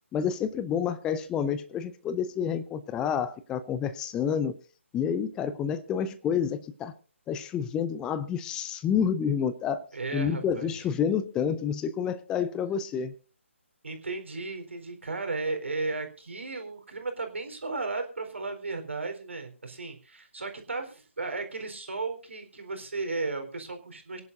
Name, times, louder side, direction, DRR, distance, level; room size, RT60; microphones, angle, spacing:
voice 1, 0.1-4.5 4.9-6.9 7.3-9.9 10.1-13.1, left 7 dB, 10° left, 0.6 m, -29 dB
voice 2, 9.9-10.8 13.8-24.2, right 3 dB, 65° right, 4.1 m, -35 dB
25.0 x 11.0 x 2.6 m
figure-of-eight pair, 145°, 7 cm